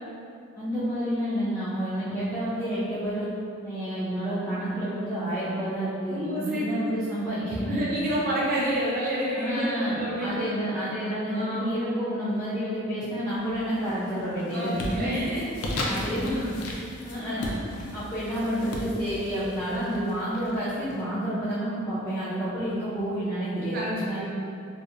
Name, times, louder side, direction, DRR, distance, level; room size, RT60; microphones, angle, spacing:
voice 1, 0.6-3.3 3.6-7.8 9.3-15.0 15.9-16.6 17.0-17.6 17.9-24.2, equal, 15° left, -12 dB, 0.3 m, -29 dB
voice 2, 6.1-6.9 7.7-10.5 11.3-11.8 14.4-15.4 15.7-16.0 17.1-17.4 23.7-24.2, equal, 45° right, -6 dB, 0.5 m, -29 dB
sound 1, 13.4-13.9 14.3-20.9, left 1 dB, 90° left, 0.4 m, -36 dB
2.6 x 2.3 x 2.4 m, 2.5 s
head